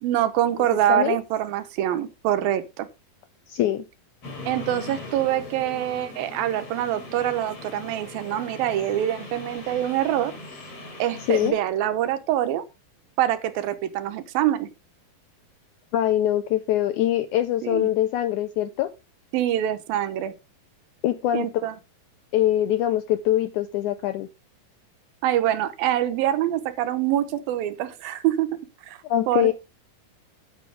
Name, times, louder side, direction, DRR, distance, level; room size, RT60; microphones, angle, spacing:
voice 1, 0.0-2.9 4.5-10.3 11.0-12.6 13.2-14.7 17.6-17.9 19.3-20.3 21.3-21.7 25.2-28.5 28.9-29.0 29.3-29.5, right 12 dB, 80° right, 2.7 m, -25 dB
voice 2, 3.5-3.9 11.3-11.5 15.9-18.9 21.0-21.5 22.3-24.3 29.1-29.5, left 12 dB, 80° left, 1.8 m, -23 dB
sound 1, 4.2-11.5, left 2 dB, 45° left, 4.1 m, -40 dB
9.3 x 8.9 x 3.5 m
omnidirectional pair, 4.2 m